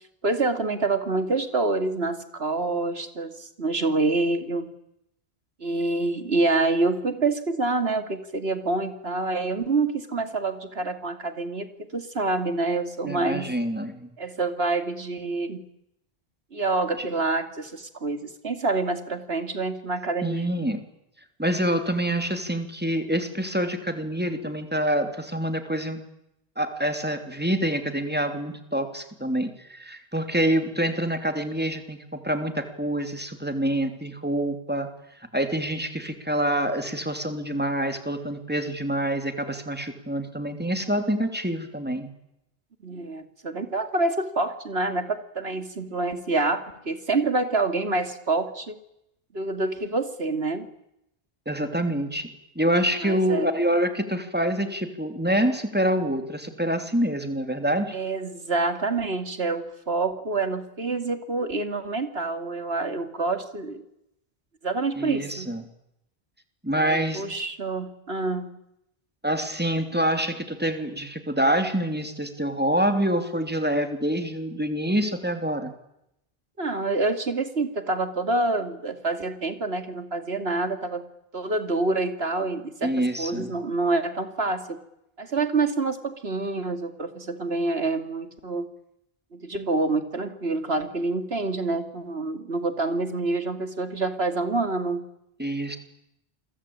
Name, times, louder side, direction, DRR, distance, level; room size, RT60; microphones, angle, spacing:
voice 1, 0.2-4.7 5.6-13.5 14.2-15.6 16.5-20.5 42.8-48.8 49.3-50.7 53.0-53.5 57.9-63.8 64.6-65.5 66.7-68.5 76.6-81.0 81.3-84.8 85.2-88.7 89.3-95.0, right 3 dB, 85° right, 8 dB, 2.8 m, -27 dB
voice 2, 13.0-14.1 17.0-17.1 20.2-20.8 21.4-26.0 26.6-34.9 35.3-42.1 51.5-52.3 52.5-58.0 65.0-65.6 66.6-67.2 69.2-75.7 82.8-83.5 95.4-95.8, right 1 dB, 10° right, 7 dB, 3.1 m, -26 dB
29.0 x 23.0 x 8.8 m, 0.83 s
omnidirectional pair, 1.0 m